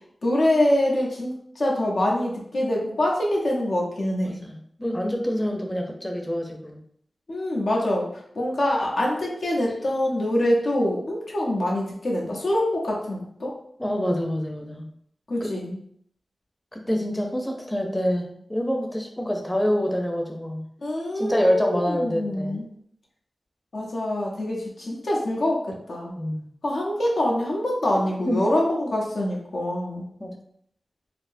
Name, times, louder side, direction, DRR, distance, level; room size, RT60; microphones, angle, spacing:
voice 1, 0.2-4.4 7.3-13.5 15.3-15.8 20.8-22.7 23.7-26.1 26.6-30.0, left 1 dB, 85° left, -3 dB, 0.8 m, -25 dB
voice 2, 4.2-6.8 13.8-14.9 15.4-15.6 16.7-20.6 21.1-22.6 26.2-26.5 28.3-28.4 30.2-30.4, equal, 15° left, 2 dB, 0.6 m, -26 dB
4.2 x 2.0 x 2.6 m, 0.65 s
cardioid pair, 55°, 0 cm